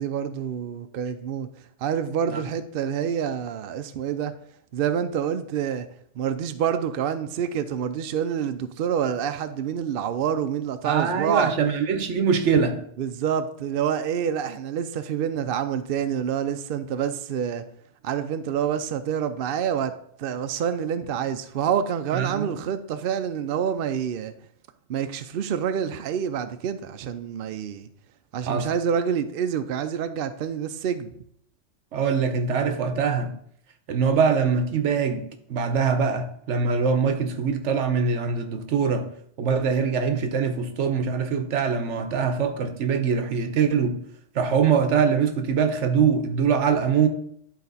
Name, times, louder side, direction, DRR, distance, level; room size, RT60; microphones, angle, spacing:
voice 1, 0.0-1.5 1.8-4.3 4.7-5.9 6.2-11.5 13.0-17.6 18.0-19.9 20.2-24.3 24.9-27.9 28.3-31.1, right 8 dB, 60° right, 0.6 m, -27 dB
voice 2, 10.8-12.8 22.1-22.5 28.5-28.7 31.9-33.3 33.9-39.1 39.4-44.0 44.3-47.1, right 6 dB, 75° right, 1.1 m, -23 dB
10.5 x 4.2 x 4.0 m
omnidirectional pair, 1.2 m